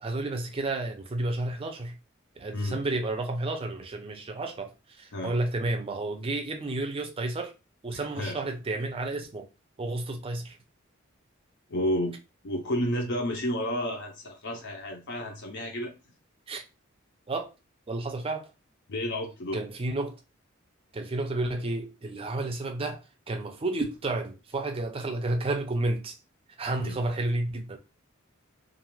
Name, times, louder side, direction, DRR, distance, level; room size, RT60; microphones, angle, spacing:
voice 1, 0.0-2.0 2.4-7.5 7.8-9.5 9.8-10.6 16.5-16.6 17.3-17.5 17.9-18.5 19.5-20.2 20.9-26.2 26.6-27.8, right 2 dB, 25° right, 0.5 m, -31 dB
voice 2, 7.9-8.4 11.7-12.2 12.4-15.9 18.9-19.6 26.8-27.0, equal, 55° left, 0.6 m, -31 dB
2.5 x 2.4 x 3.0 m
head